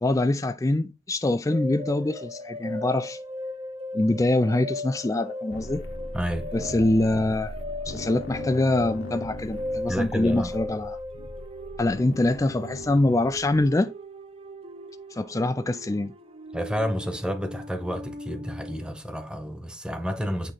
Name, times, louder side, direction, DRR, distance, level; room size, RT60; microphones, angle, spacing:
voice 1, 0.0-3.2 3.9-5.8 6.5-7.5 7.9-11.0 11.8-13.9 15.1-16.1, left 2 dB, 15° left, 0.3 m, -24 dB
sound 1, 1.5-18.9, left 1 dB, 30° right, 0.7 m, -38 dB
sound 2, 5.5-13.7, left 1 dB, 65° left, 1.0 m, -39 dB
voice 2, 6.1-6.5 9.9-10.5 16.5-20.5, equal, 5° right, 1.0 m, -30 dB
8.6 x 3.1 x 3.9 m
head